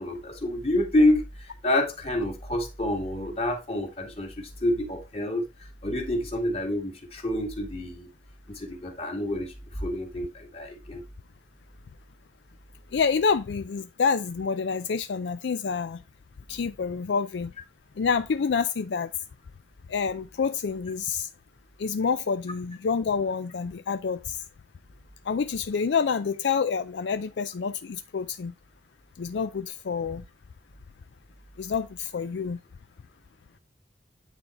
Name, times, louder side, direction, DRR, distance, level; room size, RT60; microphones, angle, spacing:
voice 1, 0.0-5.5 5.8-8.1 8.5-11.0, left 1 dB, 35° left, 2.0 m, -28 dB
voice 2, 12.9-16.0 16.5-17.5 18.0-19.1 19.9-21.3 21.8-24.4 25.3-28.5 29.2-30.2 31.6-32.6, left 5 dB, 80° left, 0.4 m, -28 dB
9.2 x 4.0 x 4.2 m
head